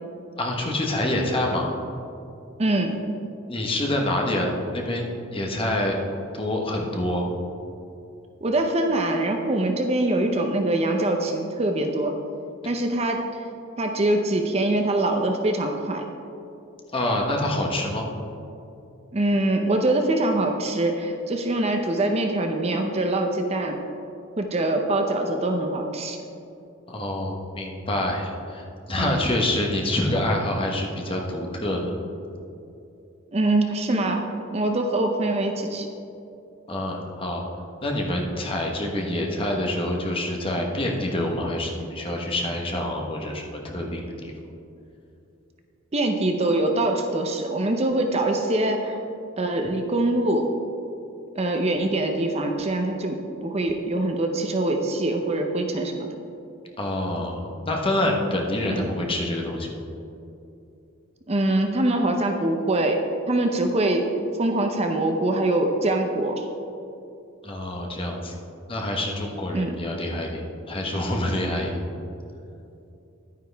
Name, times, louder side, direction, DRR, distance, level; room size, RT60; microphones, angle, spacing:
voice 1, 0.4-1.7 3.5-6.0 6.3-7.3 16.9-18.0 26.9-32.0 36.7-37.4 37.8-44.3 56.8-59.8 67.4-68.4 68.7-71.8, left 1 dB, 25° left, 0 dB, 1.1 m, -26 dB
voice 2, 2.6-3.0 8.4-12.1 12.6-13.2 13.8-16.0 19.1-23.8 24.4-26.2 29.0-29.3 33.3-35.9 45.9-48.9 49.4-50.5 51.4-53.2 53.4-56.1 58.7-58.9 61.3-63.0 63.3-64.1 64.4-66.5 69.5-69.8, right 2 dB, 30° right, 4 dB, 0.6 m, -23 dB
10.5 x 9.4 x 3.4 m, 2.7 s
head